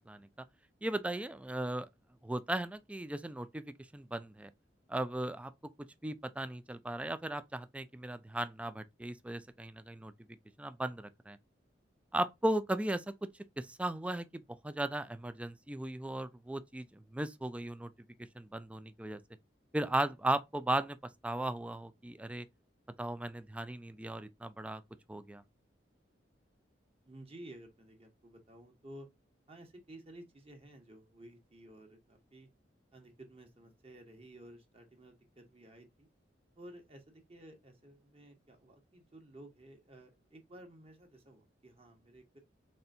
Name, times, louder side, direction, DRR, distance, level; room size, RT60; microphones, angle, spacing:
voice 1, 0.8-1.9 2.2-3.6 3.9-4.5 4.9-5.5 6.0-10.1 10.6-11.4 12.1-13.0 13.6-14.3 14.6-17.9 18.4-19.2 19.7-21.0 21.2-22.5 23.0-24.8 25.1-25.4, right 1 dB, 5° right, 0.3 m, -36 dB
voice 2, 27.0-29.1 29.5-32.5 32.9-36.1 36.5-42.4, right 1 dB, 30° right, 1.2 m, -54 dB
4.2 x 3.3 x 2.6 m
head